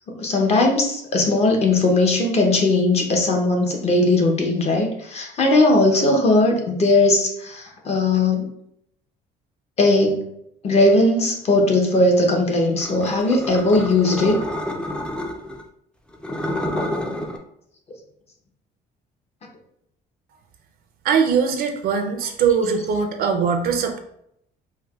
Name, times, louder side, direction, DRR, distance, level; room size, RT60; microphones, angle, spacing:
voice 1, 0.1-8.5 9.8-10.3 10.6-14.4, left 2 dB, 40° left, 2 dB, 0.7 m, -18 dB
sound 1, 12.8-15.6 16.1-17.4, left 1 dB, 5° left, 0.4 m, -29 dB
voice 2, 21.0-24.0, right 6 dB, 65° right, 5 dB, 0.5 m, -21 dB
4.4 x 2.1 x 2.3 m, 0.73 s
cardioid pair, 110°, 17 cm